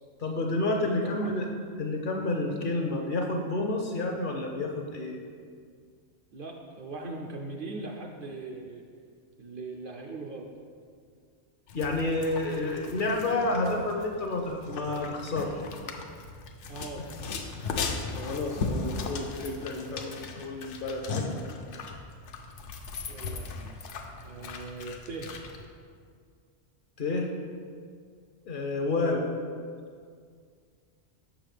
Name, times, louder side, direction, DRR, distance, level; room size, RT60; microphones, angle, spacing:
voice 1, 0.2-1.5 1.8-5.2 11.7-15.6 18.1-21.4 27.0-27.3 28.5-29.3, left 2 dB, 55° left, 2 dB, 0.6 m, -30 dB
voice 2, 0.7-1.3 6.3-8.8 9.4-10.5 16.7-17.1 23.1-23.8 24.2-25.3, right 3 dB, 60° right, 1 dB, 0.6 m, -40 dB
sound 1, 11.7-25.7, left 4 dB, 80° left, 0.9 m, -37 dB
6.5 x 6.2 x 3.3 m, 2.1 s
omnidirectional pair, 1.2 m